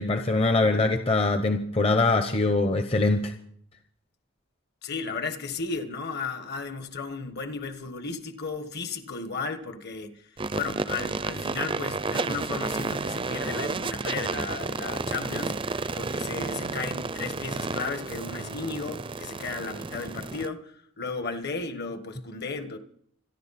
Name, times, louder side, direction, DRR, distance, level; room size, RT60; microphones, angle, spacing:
voice 1, 0.0-3.3, left 3 dB, 25° left, 0.9 m, -23 dB
voice 2, 4.8-10.2 10.5-22.8, left 4 dB, 50° left, 1.5 m, -34 dB
sound 1, 10.4-20.5, right 3 dB, 25° right, 0.5 m, -31 dB
27.0 x 11.0 x 4.2 m
head